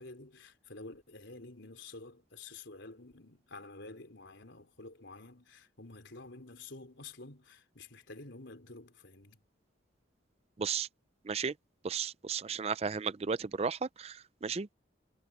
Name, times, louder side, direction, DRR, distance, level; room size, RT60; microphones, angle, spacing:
voice 1, 0.0-9.4, left 3 dB, 70° left, 4.0 m, -50 dB
voice 2, 11.8-14.7, right 6 dB, 30° right, 0.4 m, -34 dB
head